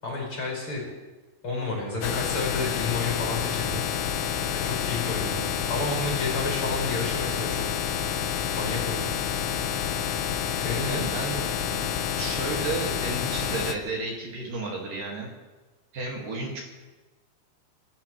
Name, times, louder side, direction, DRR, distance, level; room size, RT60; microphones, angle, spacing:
voice 1, 0.0-0.9 1.4-3.8 4.5-7.6 8.5-9.0 10.6-11.0, left 3 dB, 25° left, -2 dB, 5.7 m, -31 dB
sound 1, 2.0-13.8, left 8 dB, 80° left, 3.4 m, -29 dB
voice 2, 10.8-11.9 12.2-15.3 15.9-16.6, right 3 dB, 55° right, -1 dB, 3.1 m, -33 dB
25.5 x 13.0 x 3.2 m, 1.2 s
omnidirectional pair, 5.6 m